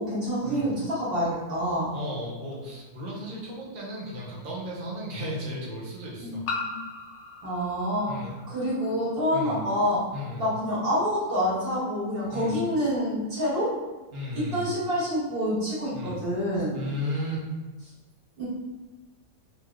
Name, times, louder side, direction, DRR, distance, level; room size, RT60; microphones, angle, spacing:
voice 1, 0.0-1.9 6.2-6.7 7.4-8.1 8.5-10.0 10.4-13.7 14.3-16.8 18.4-18.5, equal, 35° right, -9 dB, 1.3 m, -27 dB
voice 2, 1.9-6.4 8.1-8.3 9.3-9.6 10.1-10.5 12.3-12.6 14.1-14.7 15.9-16.2 16.7-17.4, left 1 dB, 90° right, -5 dB, 0.4 m, -34 dB
sound 1, 2.5-2.6 4.3-4.4 6.5-8.9, left 3 dB, 90° left, 0.6 m, -37 dB
3.2 x 2.8 x 2.3 m, 1.2 s
omnidirectional pair, 1.9 m